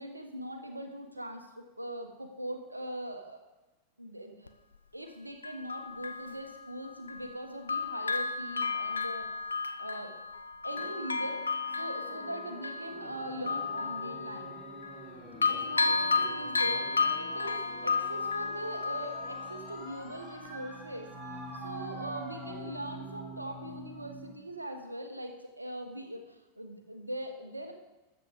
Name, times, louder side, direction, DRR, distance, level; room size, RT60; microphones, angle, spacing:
voice 1, 0.0-3.4 4.0-4.5 4.9-9.3 9.8-10.1 10.6-14.6 15.5-21.1 21.5-27.7, right 1 dB, 85° right, 6 dB, 1.3 m, -41 dB
Bell, 4.5-4.6 5.4-7.4 7.7-15.1 15.4-20.0 20.5-20.6, left 4 dB, 75° left, 0.6 m, -33 dB
sound 1, 10.7-24.4, right 2 dB, 10° right, 3.5 m, -46 dB
12.5 x 7.6 x 4.9 m, 1.1 s
figure-of-eight pair, 90°, 0 cm